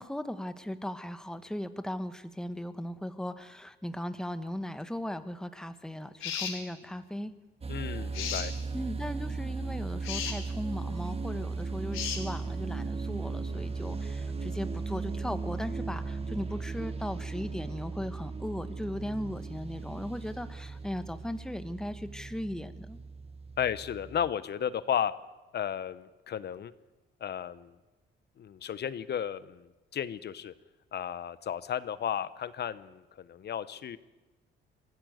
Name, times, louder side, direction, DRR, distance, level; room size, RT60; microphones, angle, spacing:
voice 1, 0.0-7.3 8.7-23.0, left 1 dB, 5° left, 10 dB, 1.4 m, -37 dB
sound 1, 6.2-6.6 8.1-8.5 10.0-10.4 11.9-12.2, left 8 dB, 85° left, 3.9 m, -34 dB
sound 2, 7.6-24.3, right 4 dB, 30° right, 1.7 m, -37 dB
voice 2, 7.7-8.5 23.6-25.1 25.5-26.7 27.2-27.7 28.4-30.5 30.9-34.0, left 9 dB, 55° left, 15 dB, 1.0 m, -34 dB
24.0 x 16.0 x 8.0 m, 1.1 s
cardioid pair, 90°, 20 cm